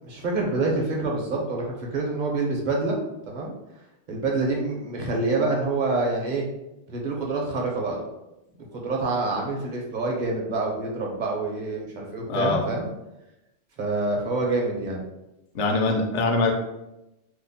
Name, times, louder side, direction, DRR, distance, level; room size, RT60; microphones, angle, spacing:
voice 1, 0.0-3.0 3.2-3.5 4.1-6.4 6.9-8.1 8.7-12.9 13.8-15.0, right 3 dB, 50° right, -1 dB, 0.7 m, -27 dB
voice 2, 12.3-12.6 15.5-16.5, left 3 dB, 80° left, 3 dB, 0.9 m, -23 dB
2.8 x 2.0 x 3.9 m, 0.93 s
omnidirectional pair, 1.2 m